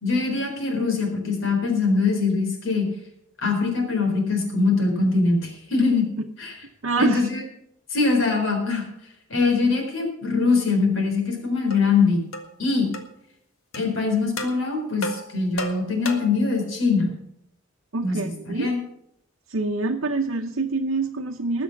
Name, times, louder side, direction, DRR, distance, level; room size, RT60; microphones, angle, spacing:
voice 1, 0.0-2.9 3.4-6.1 6.4-6.5 7.0-7.4 7.9-8.9 9.3-12.2 12.6-12.9 13.7-17.1 18.0-18.3 18.6-18.8, left 4 dB, 70° left, 3 dB, 4.3 m, -22 dB
voice 2, 6.8-7.3 17.9-18.7 19.5-21.6, right 3 dB, 75° right, 1 dB, 0.9 m, -26 dB
sound 1, 11.7-11.8 12.3-12.5 12.9-13.1 13.7-13.9 14.4-14.6 15.0-16.4, left 1 dB, 90° left, 1.8 m, -32 dB
20.0 x 6.9 x 5.9 m, 0.78 s
head